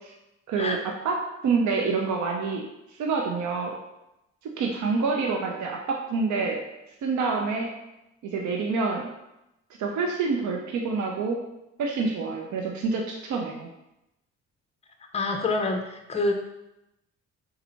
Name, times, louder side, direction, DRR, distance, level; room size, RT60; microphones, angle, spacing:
voice 1, 0.5-0.8 1.0-1.2 1.4-2.6 3.0-3.7 4.6-6.6 7.0-7.7 8.3-9.0 9.8-11.4 11.8-13.7, right 4 dB, 70° right, 1 dB, 0.7 m, -27 dB
voice 2, 15.1-16.3, left 2 dB, 20° left, 4 dB, 0.6 m, -26 dB
4.0 x 2.7 x 4.4 m, 0.91 s
cardioid pair, 90°, 30 cm